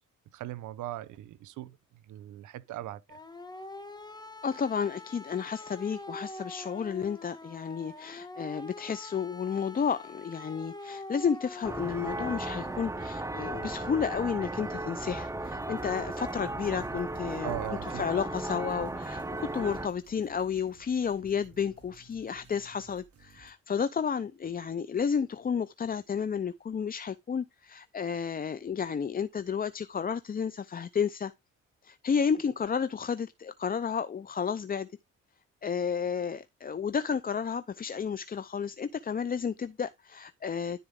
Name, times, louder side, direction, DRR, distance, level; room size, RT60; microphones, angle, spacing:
voice 1, 0.3-1.8 2.0-3.2 17.4-18.1, right 14 dB, 80° right, 0.8 m, -39 dB
sound 1, 3.1-12.8, left 2 dB, 15° left, 1.5 m, -45 dB
voice 2, 4.4-31.3 31.8-34.9 35.6-40.8, left 6 dB, 30° left, 0.6 m, -32 dB
sound 2, 11.6-19.9, right 2 dB, 10° right, 0.8 m, -36 dB
sound 3, 15.4-23.5, right 3 dB, 50° right, 2.3 m, -58 dB
13.0 x 4.3 x 3.7 m
cardioid pair, 90°, 30 cm